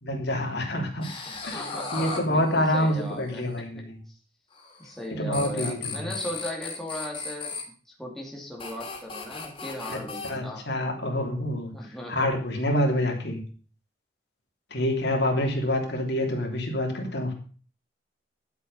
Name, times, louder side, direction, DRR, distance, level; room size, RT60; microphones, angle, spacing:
voice 1, 0.0-1.1 1.4-1.6 1.9-4.0 5.2-6.1 9.9-10.0 10.2-11.7 12.1-13.4 14.7-17.3, left 1 dB, 60° left, 1 dB, 3.2 m, -27 dB
sound 1, 1.0-3.3 4.6-5.1 5.3-7.6 8.6-10.3, left 4 dB, 30° left, 3.5 m, -36 dB
voice 2, 1.3-3.4 4.8-7.6 7.9-10.6 11.7-12.3, equal, ahead, -2 dB, 2.6 m, -37 dB
11.5 x 8.3 x 5.4 m, 0.41 s
head